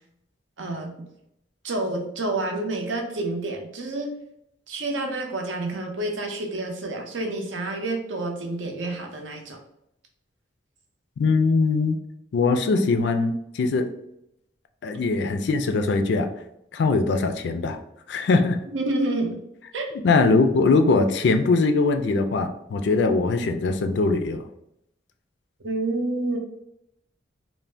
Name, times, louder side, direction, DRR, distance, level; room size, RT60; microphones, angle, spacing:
voice 1, 0.6-1.0 1.6-4.1 4.7-9.6 18.7-19.4 19.7-19.9 25.6-26.4, right 2 dB, 80° right, 2 dB, 0.6 m, -28 dB
voice 2, 11.2-12.0 12.3-13.9 14.8-16.3 16.7-17.8 18.1-18.6 20.0-24.4, left 3 dB, 65° left, 7 dB, 0.3 m, -21 dB
2.5 x 2.1 x 3.2 m, 0.79 s
head